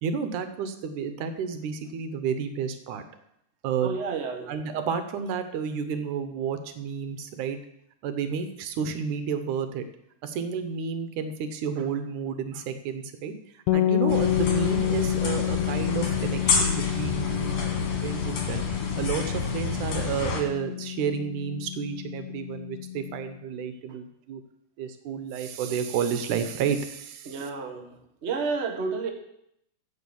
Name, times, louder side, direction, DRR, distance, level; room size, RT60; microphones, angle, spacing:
voice 1, 0.0-3.0 3.6-4.0 4.5-7.6 8.0-9.8 10.2-18.6 19.0-24.4 24.8-27.4, right 6 dB, 80° right, 9 dB, 2.5 m, -31 dB
voice 2, 3.8-4.5 23.9-24.0 27.2-29.1, right 4 dB, 50° right, 3 dB, 0.7 m, -31 dB
sound 1, 13.7-23.4, left 12 dB, 80° left, 2.1 m, -29 dB
sound 2, 14.1-20.4, left 4 dB, 55° left, 2.8 m, -29 dB
15.0 x 5.2 x 7.1 m, 0.77 s
omnidirectional pair, 3.6 m